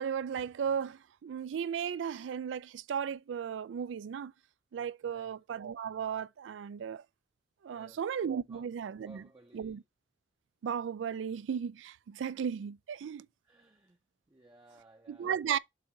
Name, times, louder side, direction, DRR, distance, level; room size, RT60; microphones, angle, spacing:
voice 1, 0.0-4.3 4.7-7.0 7.6-9.2 9.5-9.8 10.6-13.3 15.1-15.6, right 7 dB, 85° right, 0.3 m, -35 dB
voice 2, 5.0-5.3 7.7-8.1 8.4-8.7 9.0-9.8 13.4-14.0 14.3-15.6, right 2 dB, 20° right, 0.6 m, -58 dB
7.4 x 2.7 x 5.8 m
head